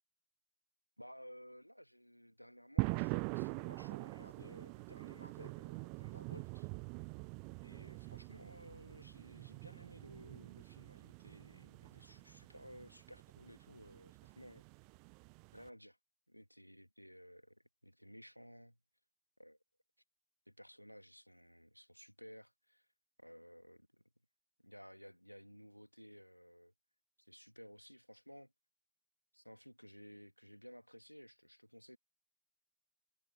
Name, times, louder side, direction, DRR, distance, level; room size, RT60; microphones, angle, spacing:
voice 1, 1.0-6.7 7.6-14.6 15.5-16.0 16.3-18.8 19.4-19.6 20.5-22.9 23.2-24.0 24.6-26.7 27.2-28.5 29.3-32.0, equal, 90° left, 2.2 m, -56 dB
sound 1, 2.8-15.7, right 40 dB or more, 45° right, 0.5 m, -44 dB
figure-of-eight pair, 90°, 0 cm